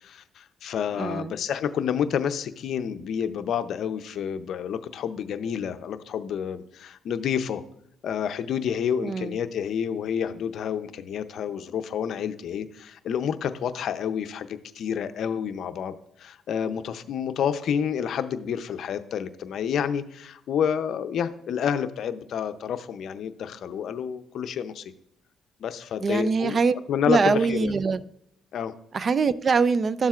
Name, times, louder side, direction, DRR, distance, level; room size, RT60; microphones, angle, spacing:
voice 1, 0.0-7.6 8.0-15.9 16.2-24.8 25.6-26.6 26.9-27.7 28.5-28.7, left 8 dB, 70° left, 11 dB, 0.6 m, -29 dB
voice 2, 1.0-1.3 9.0-9.3 26.0-26.8 27.1-28.0 28.9-30.1, right 4 dB, 40° right, 16 dB, 0.4 m, -23 dB
12.5 x 7.3 x 2.4 m, 0.76 s
cardioid pair, 90°, 0 cm